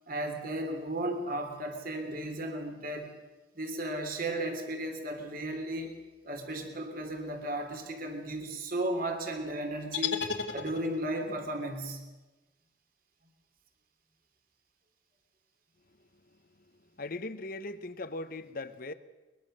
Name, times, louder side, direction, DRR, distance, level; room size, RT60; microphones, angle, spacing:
voice 1, 0.1-3.1 3.5-6.0 6.2-10.2 10.5-12.0, right 1 dB, 50° right, 3.2 m, -35 dB
sound 1, 9.9-11.2, left 6 dB, 65° left, 2.1 m, -34 dB
voice 2, 17.0-18.9, left 2 dB, 50° left, 1.1 m, -39 dB
22.5 x 21.5 x 6.6 m
head